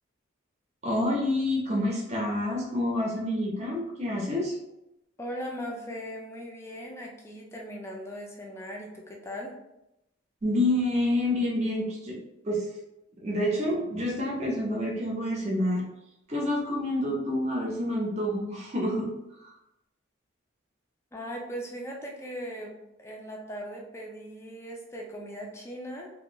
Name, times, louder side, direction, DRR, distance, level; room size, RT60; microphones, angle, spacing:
voice 1, 0.8-4.5 10.4-12.2 12.4-12.6 13.2-15.8 16.3-19.1, left 1 dB, 35° right, -3 dB, 0.6 m, -28 dB
voice 2, 5.2-9.5 21.1-26.1, equal, 15° left, -1 dB, 0.4 m, -39 dB
2.6 x 2.4 x 2.9 m, 0.88 s
head